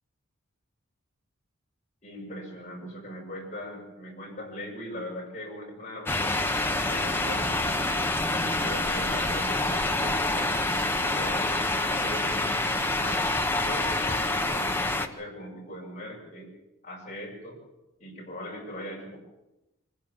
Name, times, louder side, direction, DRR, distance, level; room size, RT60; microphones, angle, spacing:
voice 1, 2.0-7.9 8.3-13.3 13.6-16.5 16.8-17.6 18.0-19.2, equal, 35° left, -2 dB, 7.3 m, -40 dB
sound 1, 6.1-15.1, left 2 dB, 10° left, 1.0 m, -27 dB
25.0 x 16.5 x 7.3 m, 0.97 s
head